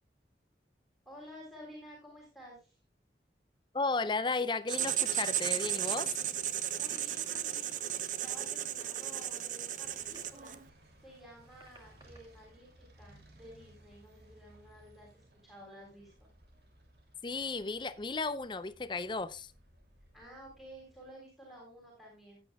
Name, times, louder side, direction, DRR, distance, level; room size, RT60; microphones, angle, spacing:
voice 1, 1.1-2.8 6.8-7.7 8.2-10.6 11.0-16.3 20.1-22.4, equal, ahead, 3.5 m, -52 dB
voice 2, 3.7-6.1 17.2-19.5, left 3 dB, 25° left, 0.5 m, -34 dB
Writing, 4.7-10.6, right 11 dB, 45° right, 0.6 m, -34 dB
sound 1, 6.8-7.4 8.5-9.1 9.7-10.7 11.3-12.2 13.4-13.5, right 2 dB, 25° right, 1.6 m, -60 dB
sound 2, 9.8-21.1, right 1 dB, 65° right, 2.7 m, -61 dB
15.0 x 8.9 x 2.3 m
head